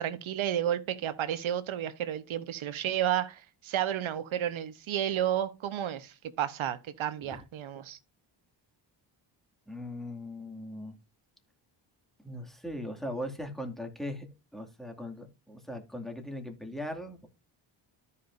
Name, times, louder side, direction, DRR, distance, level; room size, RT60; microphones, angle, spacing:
voice 1, 0.0-8.0, right 11 dB, 70° right, 1.1 m, -32 dB
voice 2, 9.7-11.0 12.2-14.3 14.5-17.3, left 1 dB, ahead, 2.2 m, -39 dB
13.5 x 5.5 x 2.6 m
cardioid pair, 80°, 49 cm